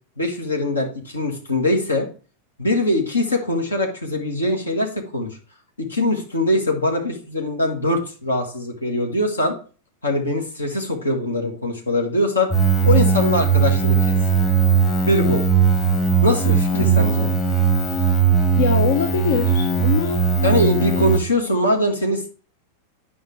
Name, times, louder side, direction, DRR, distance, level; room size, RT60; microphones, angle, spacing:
voice 1, 0.2-2.1 2.6-5.3 5.8-9.5 10.0-12.5 12.8-14.2 15.0-15.4 16.2-17.3 20.4-22.3, left 1 dB, 75° left, 3 dB, 1.7 m, -22 dB
sound 1, 12.5-21.2, right 6 dB, 25° left, 1.5 m, -18 dB
voice 2, 16.7-17.1 18.6-20.2, left 7 dB, 60° left, 8 dB, 0.7 m, -23 dB
9.6 x 5.6 x 3.3 m, 0.38 s
figure-of-eight pair, 90°, 0 cm